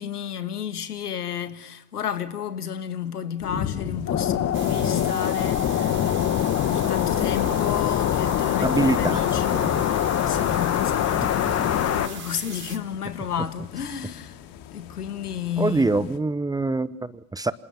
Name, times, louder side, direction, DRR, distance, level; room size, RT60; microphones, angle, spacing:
voice 1, 0.0-6.2 6.7-9.7 10.3-14.4 14.7-16.1, left 8 dB, 80° left, 1.9 m, -32 dB
sound 1, 3.4-16.2, left 8 dB, 50° left, 2.5 m, -38 dB
sound 2, 4.1-12.1, left 10 dB, 35° left, 1.7 m, -23 dB
sound 3, 4.5-12.8, right 6 dB, 25° right, 4.6 m, -40 dB
voice 2, 8.6-9.2 9.5-9.8 11.5-11.7 15.6-17.5, right 3 dB, 10° right, 1.0 m, -25 dB
28.5 x 27.0 x 7.1 m
hypercardioid pair, 85°, 45 cm